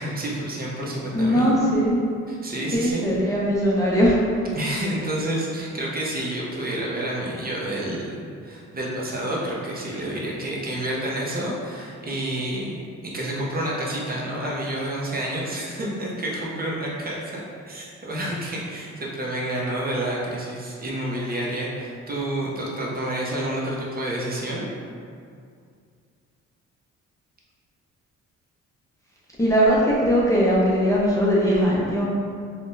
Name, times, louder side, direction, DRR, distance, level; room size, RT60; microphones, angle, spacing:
voice 1, 0.0-1.5 2.3-3.4 4.5-17.4 17.7-24.7, right 1 dB, 30° right, -4 dB, 0.6 m, -29 dB
voice 2, 1.1-2.0 2.7-4.2 29.4-32.0, equal, 10° left, -7 dB, 0.4 m, -20 dB
3.5 x 2.1 x 2.6 m, 2.3 s
cardioid pair, 90°, 30 cm